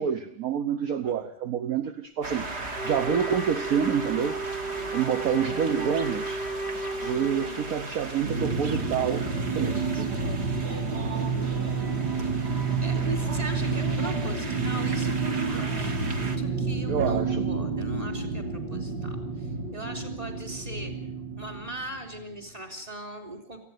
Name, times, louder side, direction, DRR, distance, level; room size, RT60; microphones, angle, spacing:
voice 1, 0.0-2.5 2.8-4.4 4.9-6.4 7.0-9.3 9.6-10.1 16.9-17.5, right 8 dB, 55° right, 9 dB, 1.4 m, -27 dB
sound 1, 2.2-16.4, right 2 dB, 35° right, 2.0 m, -38 dB
Wind instrument woodwind instrument, 2.7-7.9, right 3 dB, 5° left, 1.6 m, -34 dB
voice 2, 4.7-5.1 12.2-12.4 12.8-20.9 21.4-23.6, right 1 dB, 20° right, 6 dB, 3.5 m, -40 dB
sound 2, 8.3-22.4, right 4 dB, 80° right, 2.3 m, -29 dB
18.5 x 15.0 x 9.4 m, 0.68 s
omnidirectional pair, 2.0 m